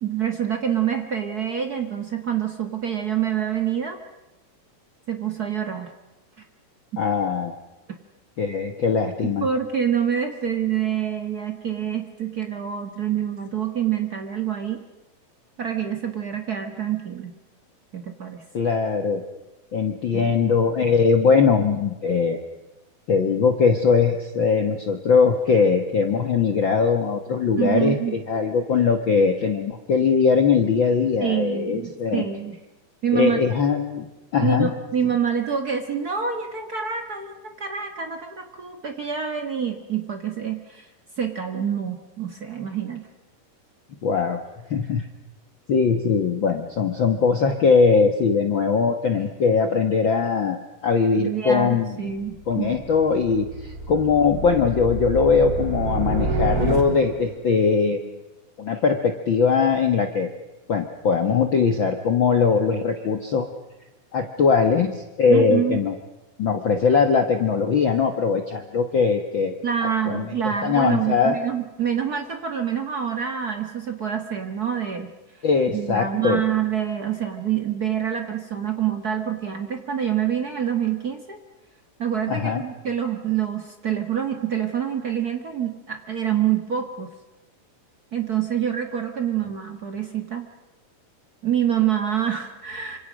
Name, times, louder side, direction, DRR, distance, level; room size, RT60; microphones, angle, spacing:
voice 1, 0.0-4.0 5.1-5.9 9.4-14.8 15.6-17.3 17.9-18.4 20.1-20.4 27.6-28.1 31.2-32.6 33.0-33.4 34.4-40.9 41.2-43.1 51.2-52.8 65.3-65.8 69.6-75.1 75.7-81.4 82.0-87.1 88.1-90.4 91.4-93.0, right 9 dB, 60° right, 6 dB, 0.9 m, -26 dB
voice 2, 7.0-7.5 8.4-9.5 18.5-19.2 19.7-22.4 23.1-32.2 33.1-34.1 34.3-34.7 44.0-44.4 44.7-45.1 45.7-52.0 52.5-58.1 58.6-60.3 60.7-63.5 64.1-65.9 66.4-69.5 70.1-71.4 75.4-76.4 82.3-82.6, left 5 dB, 65° left, 6 dB, 1.2 m, -21 dB
sound 1, 52.1-57.4, right 2 dB, 30° right, 2.5 m, -28 dB
26.5 x 26.0 x 6.3 m, 1.0 s
omnidirectional pair, 4.2 m